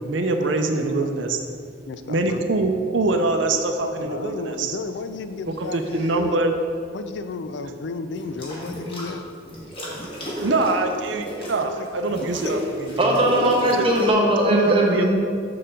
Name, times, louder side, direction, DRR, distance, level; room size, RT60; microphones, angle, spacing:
voice 1, 0.0-1.4 2.1-4.8 5.6-6.5 10.4-13.0 14.5-15.0, right 3 dB, 75° right, 5 dB, 0.6 m, -23 dB
voice 2, 0.8-1.1 1.9-2.5 3.8-6.4 6.9-9.2 11.6-11.9 12.2-12.3 13.4-13.9, left 3 dB, 65° left, 9 dB, 0.4 m, -33 dB
sound 1, 5.5-6.2 8.1-9.1 9.5-14.1, equal, 30° left, 1.7 m, -33 dB
voice 3, 12.9-15.1, right 1 dB, 30° right, -1 dB, 1.1 m, -19 dB
6.8 x 6.7 x 3.7 m, 2.2 s
head